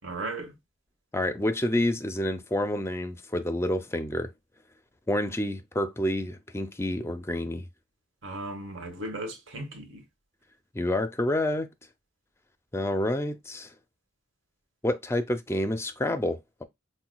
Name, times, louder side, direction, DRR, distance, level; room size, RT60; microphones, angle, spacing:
voice 1, 0.0-0.5 8.2-10.0, right 2 dB, 75° right, 1.5 m, -36 dB
voice 2, 1.1-4.3 5.1-7.7 10.7-11.7 12.7-13.7 14.8-16.6, left 1 dB, 15° left, 0.5 m, -28 dB
5.8 x 2.2 x 2.2 m
head